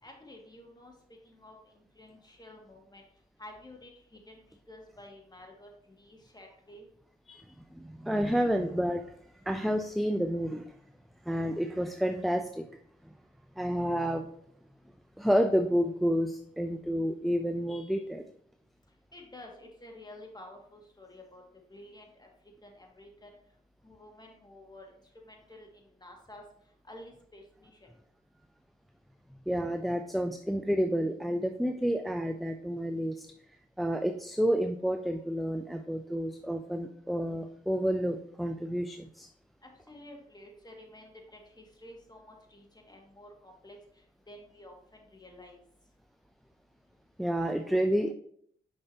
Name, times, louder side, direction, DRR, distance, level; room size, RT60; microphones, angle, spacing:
voice 1, 0.0-0.9 1.2-3.0 3.4-4.4 4.7-6.9 19.1-21.4 21.7-22.3 22.6-23.4 23.8-24.9 25.2-26.4 26.8-27.9 39.6-45.6, left 1 dB, 20° left, 1 dB, 2.0 m, -51 dB
voice 2, 7.3-9.1 9.5-10.6 11.3-12.7 13.6-14.3 15.2-18.2 29.5-33.3 33.8-39.3 47.2-48.1, equal, ahead, 7 dB, 0.5 m, -30 dB
6.5 x 5.5 x 2.8 m, 0.66 s
hypercardioid pair, 40°, 20 cm